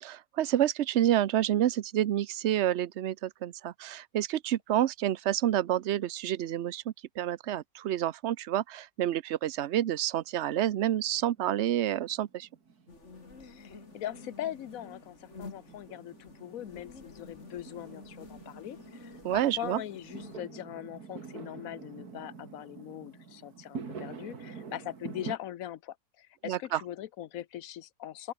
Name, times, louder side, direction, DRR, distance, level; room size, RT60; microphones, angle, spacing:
voice 1, 0.0-12.5 19.2-19.8 26.4-26.8, right 12 dB, 60° right, 0.9 m, -29 dB
Fireworks, 10.8-25.4, right 5 dB, 90° right, 2.8 m, -47 dB
sound 1, 12.9-20.4, left 3 dB, 50° left, 2.9 m, -50 dB
voice 2, 13.4-28.3, left 12 dB, 70° left, 1.2 m, -41 dB
open air
omnidirectional pair, 1.6 m